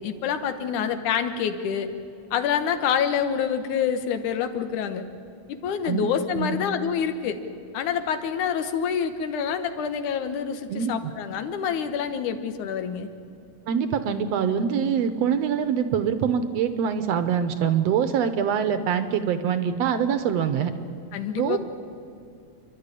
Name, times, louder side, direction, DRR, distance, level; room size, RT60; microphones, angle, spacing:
voice 1, 0.0-1.9 2.3-5.0 5.5-7.4 7.7-13.1 21.1-21.6, left 7 dB, 85° left, 9 dB, 2.6 m, -27 dB
voice 2, 10.7-11.1 13.7-20.7 21.4-21.6, right 7 dB, 70° right, 10 dB, 1.8 m, -24 dB
28.0 x 12.0 x 9.9 m, 2.6 s
omnidirectional pair, 3.4 m